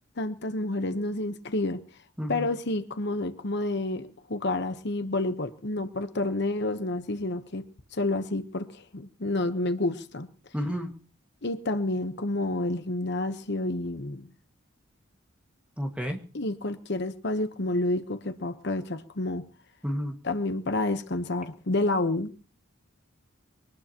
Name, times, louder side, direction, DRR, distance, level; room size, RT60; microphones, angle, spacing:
voice 1, 0.2-1.8 2.3-7.6 7.9-10.3 11.4-14.3 16.3-19.4 20.2-22.3, left 2 dB, 55° left, 1.0 m, -29 dB
voice 2, 10.5-10.9 15.8-16.2 19.8-20.1, equal, 5° right, 1.8 m, -30 dB
23.0 x 19.0 x 3.0 m
head